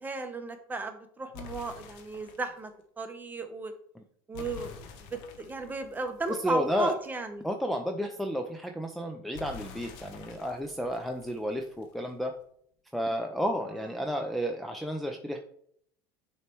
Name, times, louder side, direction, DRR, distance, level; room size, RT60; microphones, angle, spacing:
voice 1, 0.0-2.7 3.0-3.7 4.3-7.5, right 3 dB, 15° right, 7 dB, 0.9 m, -35 dB
sound 1, 1.3-2.6 4.3-7.1 9.3-12.1, left 6 dB, 70° left, 1.0 m, -47 dB
voice 2, 6.3-6.9 7.4-12.3 12.9-15.4, equal, ahead, 2 dB, 0.6 m, -32 dB
6.5 x 3.2 x 4.5 m, 0.65 s
supercardioid pair, 110°, 10 cm